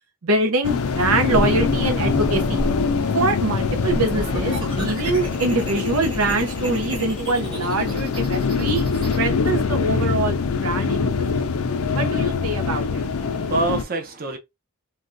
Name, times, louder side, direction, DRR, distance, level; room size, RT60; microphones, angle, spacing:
voice 1, 0.2-2.7 3.1-8.9 9.2-10.4 10.6-11.0 11.9-13.0, right 2 dB, 80° right, 0.7 m, -24 dB
sound 1, 0.6-13.8, left 5 dB, 70° left, 0.5 m, -24 dB
sound 2, 1.3-2.9 3.6-9.2, right 1 dB, 25° right, 1.2 m, -31 dB
Wind instrument woodwind instrument, 2.3-7.7, equal, ahead, 0.6 m, -40 dB
voice 2, 13.1-14.4, right 3 dB, 45° right, 0.7 m, -27 dB
3.4 x 2.2 x 2.6 m
head